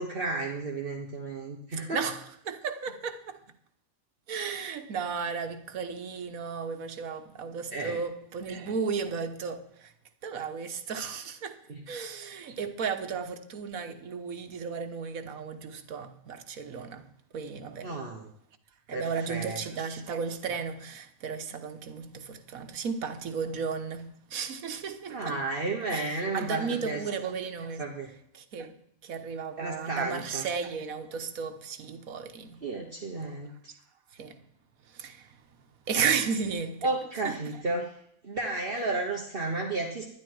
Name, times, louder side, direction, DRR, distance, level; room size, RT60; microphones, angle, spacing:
voice 1, 0.0-2.0 7.7-8.0 11.7-11.8 17.8-18.3 18.9-19.6 25.1-27.0 27.8-28.1 29.6-30.5 32.6-33.5 36.8-37.9 38.2-40.1, right 2 dB, 45° right, 1.4 m, -32 dB
voice 2, 1.7-3.4 4.3-9.9 10.2-11.6 11.9-17.1 17.3-18.0 18.9-25.4 25.8-27.9 28.3-28.7 29.0-32.6 34.1-34.4 34.9-35.4 35.9-36.9 37.2-37.4, right 6 dB, 85° right, 1.5 m, -34 dB
12.0 x 10.5 x 4.7 m
omnidirectional pair, 1.4 m